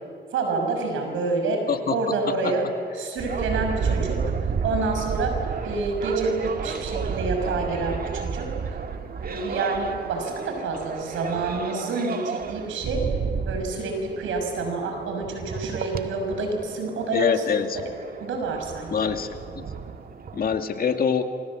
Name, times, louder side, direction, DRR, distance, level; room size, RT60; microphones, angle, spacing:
voice 1, 0.3-1.6 1.9-2.6 3.0-4.3 4.6-5.3 5.6-8.8 9.2-13.0 13.4-17.4 18.2-19.1, right 3 dB, 80° right, 3 dB, 6.4 m, -28 dB
sound 1, 3.2-20.6, right 5 dB, 50° right, 1.8 m, -32 dB
voice 2, 17.1-17.8 18.9-19.6 20.3-21.3, left 6 dB, 50° left, 7 dB, 2.2 m, -24 dB
28.0 x 26.0 x 7.7 m, 2.4 s
cardioid pair, 90°, 20 cm